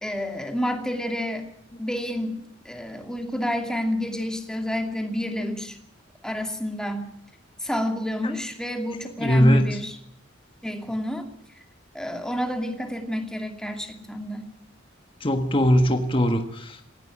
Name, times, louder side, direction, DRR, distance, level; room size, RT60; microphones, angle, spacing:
voice 1, 0.0-1.4 1.8-5.8 6.2-7.1 7.6-10.0 10.6-11.3 11.9-14.5, equal, 5° left, 5 dB, 2.5 m, -29 dB
voice 2, 9.2-9.6 15.2-16.8, equal, 25° left, 6 dB, 1.5 m, -20 dB
18.5 x 16.5 x 10.0 m, 0.70 s
head